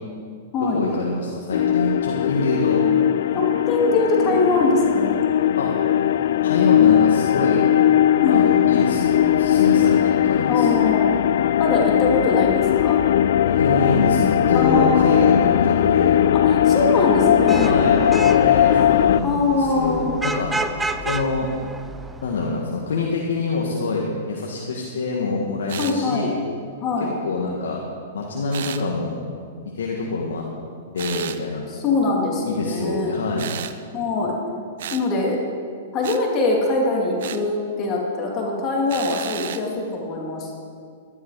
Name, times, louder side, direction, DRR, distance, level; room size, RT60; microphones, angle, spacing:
voice 1, 0.6-2.8 5.6-5.7 6.4-7.7 8.3-10.7 13.5-16.2 17.6-20.5 21.0-21.5 22.2-26.3 27.2-27.8 28.1-29.2 29.6-30.5 30.9-31.6 32.4-33.5, left 3 dB, 85° left, -1 dB, 1.7 m, -25 dB
sound 1, 1.5-19.2, left 10 dB, 70° left, 0.3 m, -18 dB
voice 2, 3.3-5.2 8.2-8.5 10.5-11.1 11.6-13.0 14.5-15.2 16.3-17.8 19.2-20.2 25.8-26.3 26.8-27.1 31.7-33.1 33.9-34.3 34.9-35.4 35.9-40.5, left 3 dB, 30° left, -1 dB, 2.3 m, -22 dB
Vehicle horn car horn honking / Traffic noise roadway noise, 17.2-22.5, right 2 dB, 10° right, 0.6 m, -31 dB
sound 2, 25.7-26.0 28.5-28.8 31.0-31.4 33.4-33.8 34.8-35.1 36.0-36.2 37.2-37.4 38.9-39.6, right 10 dB, 65° right, 0.7 m, -32 dB
12.5 x 11.5 x 4.9 m, 2.2 s
hypercardioid pair, 140°, 0 cm